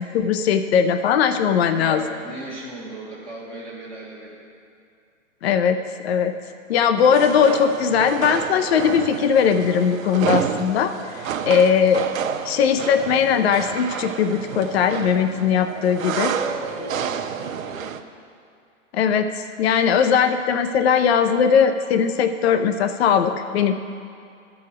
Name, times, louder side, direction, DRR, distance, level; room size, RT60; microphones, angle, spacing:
voice 1, 0.0-2.0 5.4-6.3 6.7-12.1 12.5-16.3 18.9-23.7, left 7 dB, 50° left, 8 dB, 0.6 m, -19 dB
voice 2, 1.5-4.4 16.4-18.0, right 2 dB, 5° left, -9 dB, 1.7 m, -36 dB
sound 1, 7.0-18.0, right 8 dB, 80° right, 0.7 m, -30 dB
12.5 x 4.9 x 6.0 m, 2.5 s
hypercardioid pair, 145°, 40 cm